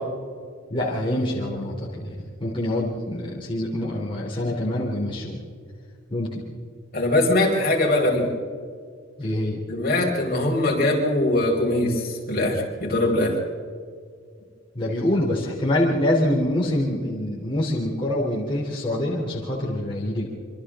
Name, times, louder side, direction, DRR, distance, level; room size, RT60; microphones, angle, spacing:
voice 1, 0.7-5.4 6.1-6.4 9.2-9.7 14.8-20.3, left 1 dB, 25° left, -5 dB, 3.5 m, -25 dB
voice 2, 6.9-8.3 9.7-13.4, left 1 dB, 50° left, -1 dB, 5.2 m, -22 dB
27.0 x 26.0 x 3.8 m, 2.1 s
head